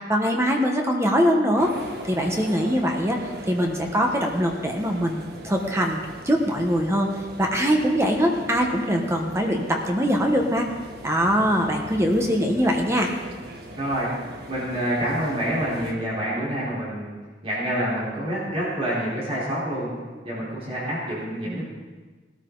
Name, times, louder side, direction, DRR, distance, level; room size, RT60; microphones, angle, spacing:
voice 1, 0.1-1.7 2.1-3.2 3.5-7.1 7.4-10.7 11.0-13.1 21.5-21.6, equal, 15° right, 2 dB, 1.3 m, -22 dB
sound 1, 1.6-15.9, right 1 dB, 60° right, 1.6 m, -40 dB
voice 2, 13.8-14.1 14.5-17.1 17.4-19.9 20.2-21.6, equal, 35° right, -8 dB, 4.1 m, -27 dB
19.0 x 13.5 x 4.0 m, 1.4 s
head